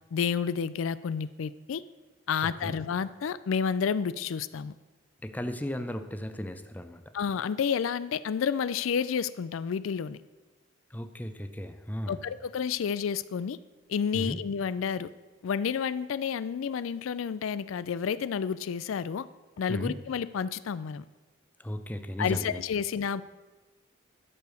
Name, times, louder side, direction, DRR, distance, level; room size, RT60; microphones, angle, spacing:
voice 1, 0.1-1.8 2.3-4.7 7.1-10.2 12.1-13.6 13.9-15.1 15.4-19.3 19.6-21.0 22.2-23.2, left 7 dB, 80° left, 16 dB, 0.4 m, -30 dB
voice 2, 2.4-2.8 5.2-7.0 10.9-12.2 14.1-14.4 19.7-19.9 21.6-22.6, equal, 10° left, 8 dB, 0.5 m, -35 dB
11.0 x 6.8 x 6.3 m, 1.2 s
head